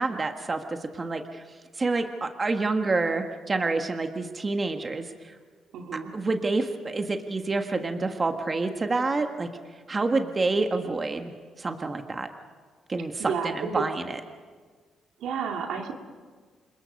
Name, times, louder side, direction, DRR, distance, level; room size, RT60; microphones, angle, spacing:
voice 1, 0.0-1.4 1.8-5.3 6.1-9.5 9.9-11.3 11.6-12.3 12.9-14.2, right 3 dB, 30° right, 6 dB, 1.5 m, -28 dB
voice 2, 5.7-6.1 13.2-13.8 15.2-15.9, right 6 dB, 80° right, 3 dB, 2.3 m, -31 dB
27.0 x 21.5 x 5.3 m, 1.5 s
cardioid pair, 90°, 0 cm